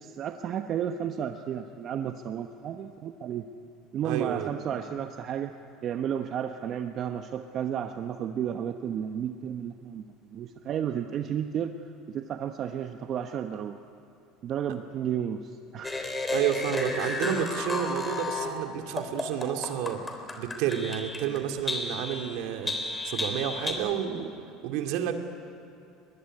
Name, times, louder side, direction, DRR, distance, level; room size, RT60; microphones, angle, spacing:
voice 1, 0.0-3.5 3.9-10.0 10.3-11.7 12.1-13.8 14.4-16.0, right 9 dB, 50° right, 6 dB, 1.0 m, -32 dB
voice 2, 4.0-4.5 16.3-20.0 20.3-22.7 23.0-24.3 24.6-25.2, right 9 dB, 70° right, 5 dB, 2.3 m, -30 dB
sound 1, 15.8-18.5 19.0-21.4 21.7-23.7, left 3 dB, 20° left, 3.5 m, -32 dB
23.0 x 20.5 x 9.9 m, 2.5 s
supercardioid pair, 95°, 0 cm